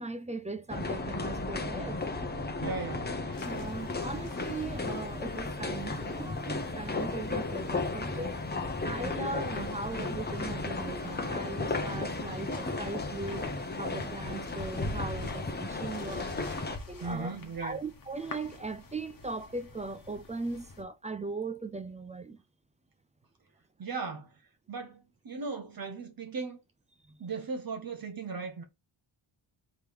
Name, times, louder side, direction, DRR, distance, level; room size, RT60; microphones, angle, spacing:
voice 1, 0.0-2.0 3.4-8.4 8.8-13.5 13.8-16.3 16.9-22.4 27.0-27.2, right 3 dB, 15° right, 0.3 m, -39 dB
sound 1, 0.7-16.8, left 3 dB, 20° left, 0.8 m, -35 dB
voice 2, 2.6-3.1 9.3-9.4 17.0-17.8 23.8-24.4 24.7-26.6 27.2-28.6, right 4 dB, 45° right, 0.9 m, -37 dB
sound 2, 3.3-20.8, left 3 dB, 40° left, 1.2 m, -46 dB
3.6 x 3.1 x 4.7 m
cardioid pair, 95°, 49 cm